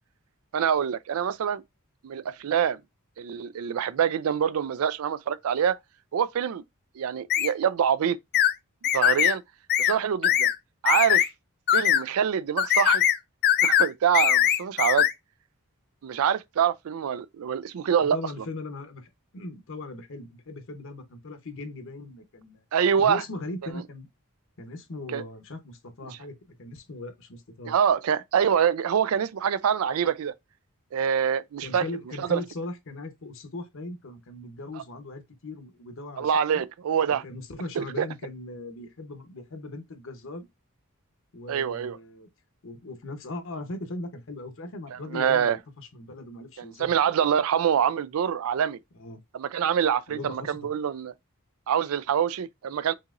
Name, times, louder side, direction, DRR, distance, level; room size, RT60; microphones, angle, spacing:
voice 1, 0.5-1.6 2.0-2.8 3.2-5.8 6.1-6.6 7.0-8.2 8.9-9.4 9.8-10.5 10.8-11.3 11.7-13.0 13.6-15.1 16.0-18.2 22.7-23.2 25.1-25.2 27.7-30.3 30.9-31.8 32.2-32.4 34.7-34.8 36.2-37.2 37.8-38.1 41.5-42.0 44.9-45.6 46.6-48.8 49.3-51.1 51.7-52.9, right 8 dB, 70° right, 0.4 m, -25 dB
sound 1, 7.3-7.5 8.3-8.5 8.8-9.3 9.7-9.9 10.2-10.5 10.8-11.3 11.7-12.0 12.6-13.2 13.4-13.9 14.1-15.1, left 10 dB, 45° left, 0.4 m, -21 dB
voice 2, 18.0-22.6 23.0-24.1 24.6-27.7 31.6-36.6 37.2-40.5 41.3-42.3 42.6-47.2 48.9-49.2 50.1-50.6, left 2 dB, 60° left, 0.9 m, -39 dB
5.5 x 2.9 x 2.5 m
head